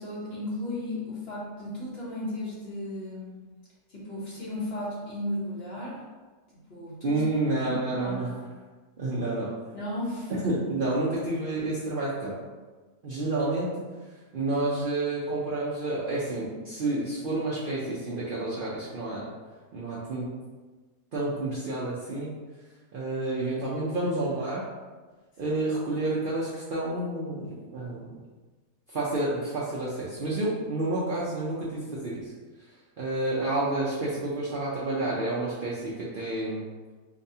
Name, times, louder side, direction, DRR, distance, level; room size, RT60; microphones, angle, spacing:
voice 1, 0.0-3.4 3.9-6.0 6.7-7.2 7.6-7.7 8.0-8.4 9.7-10.3, left 1 dB, 50° left, -7 dB, 1.1 m, -35 dB
voice 2, 7.0-8.3 9.0-9.5 10.3-12.4 13.0-13.8 14.3-19.3 19.7-20.3 21.1-22.4 22.9-24.6 25.4-28.0 28.9-32.3 33.0-36.6, right 2 dB, 55° right, -8 dB, 0.6 m, -29 dB
4.8 x 2.2 x 2.7 m, 1.3 s
omnidirectional pair, 1.5 m